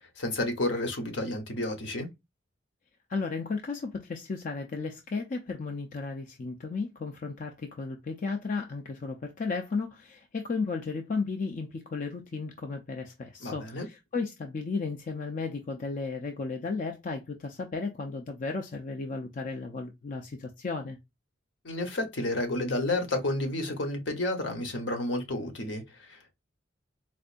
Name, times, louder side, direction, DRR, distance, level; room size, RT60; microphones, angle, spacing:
voice 1, 0.2-2.1 13.4-13.9 21.6-26.3, left 2 dB, 70° left, 1.0 m, -31 dB
voice 2, 3.1-21.0, left 4 dB, 45° left, 0.5 m, -34 dB
4.4 x 2.5 x 2.5 m
head